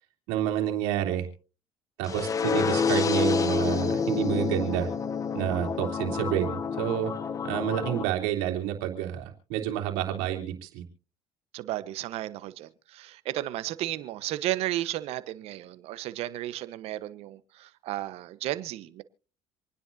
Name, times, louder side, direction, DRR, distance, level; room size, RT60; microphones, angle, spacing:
voice 1, 0.3-1.3 2.0-4.9 5.3-7.1 7.4-10.8, right 11 dB, 85° right, 2 dB, 3.2 m, -29 dB
sound 1, 2.0-8.0, left 6 dB, 30° left, 1.0 m, -28 dB
voice 2, 11.5-19.0, right 15 dB, 70° right, 14 dB, 1.1 m, -33 dB
27.0 x 10.0 x 2.7 m, 0.35 s
cardioid pair, 105°, 11 cm